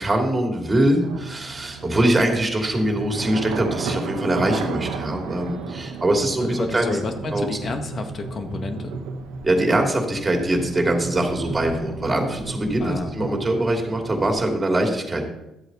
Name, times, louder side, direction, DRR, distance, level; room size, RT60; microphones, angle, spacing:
voice 1, 0.0-7.0 7.3-7.5 9.4-15.2, right 1 dB, 25° right, 2 dB, 2.8 m, -22 dB
sound 1, 1.0-14.5, right 4 dB, 85° right, 1.2 m, -34 dB
voice 2, 6.4-8.9 12.8-13.1, left 3 dB, 45° left, 6 dB, 1.6 m, -30 dB
12.5 x 8.0 x 4.0 m, 0.89 s
supercardioid pair, 65°, 0 cm